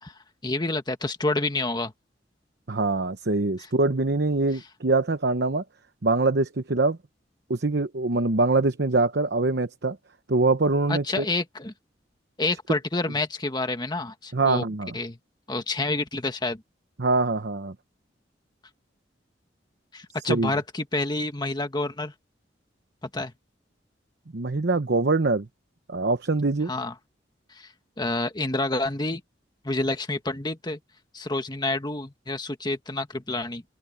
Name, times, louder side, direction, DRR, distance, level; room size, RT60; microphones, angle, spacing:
voice 1, 0.0-1.9 4.5-4.6 10.9-11.7 12.4-14.6 14.9-15.2 15.5-16.6 19.9-22.1 23.0-23.3 26.7-26.9 27.5-29.2 29.6-30.8 31.1-33.6, left 2 dB, 25° left, 1.6 m, -28 dB
voice 2, 2.7-5.6 6.0-7.0 7.5-10.0 10.3-11.2 14.3-14.9 17.0-17.7 20.3-20.5 24.3-25.5 25.9-26.7, right 3 dB, 65° right, 0.9 m, -23 dB
open air
head